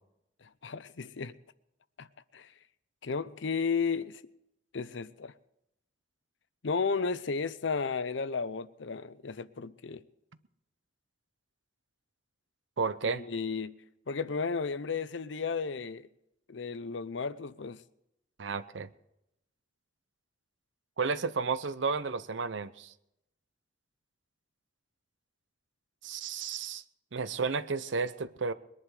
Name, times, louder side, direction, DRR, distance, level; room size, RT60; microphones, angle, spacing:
voice 1, 0.4-1.3 2.0-2.1 2.3-2.5 3.0-4.2 4.7-5.3 6.6-10.0 13.0-13.8 14.1-16.1 16.5-17.8, left 5 dB, 70° left, 0.7 m, -33 dB
voice 2, 12.8-13.2 18.4-18.9 21.0-22.9 26.0-26.8 27.1-28.5, right 4 dB, 75° right, 0.7 m, -32 dB
21.5 x 11.0 x 4.9 m
head